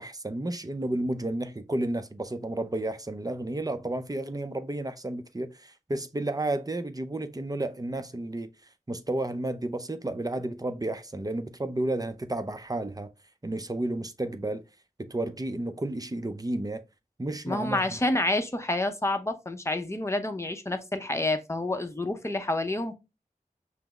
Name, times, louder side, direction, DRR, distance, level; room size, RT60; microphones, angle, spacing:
voice 1, 0.0-8.5 8.9-13.1 13.4-14.6 15.0-16.8 17.2-18.0, right 1 dB, 25° right, 0.5 m, -32 dB
voice 2, 17.4-22.9, left 2 dB, 20° left, 0.6 m, -28 dB
5.7 x 2.0 x 3.2 m
wide cardioid pair, 45°, 15 cm